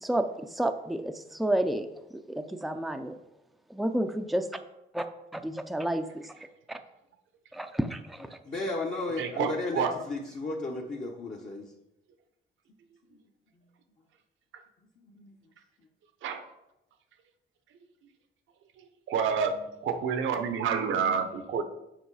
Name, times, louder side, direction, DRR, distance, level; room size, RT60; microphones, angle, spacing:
voice 1, 0.0-1.9 2.3-3.2 3.7-4.5 4.9-5.1 5.3-6.3 6.7-6.8 7.5-7.9, right 1 dB, ahead, 7 dB, 0.5 m, -30 dB
voice 2, 8.4-11.7 13.1-13.2 15.0-15.4, left 2 dB, 40° left, -3 dB, 1.1 m, -34 dB
voice 3, 9.2-10.0 16.2-16.5 19.1-21.6, right 6 dB, 80° right, 8 dB, 0.9 m, -28 dB
7.9 x 4.6 x 4.8 m, 0.89 s
cardioid pair, 90°, 20 cm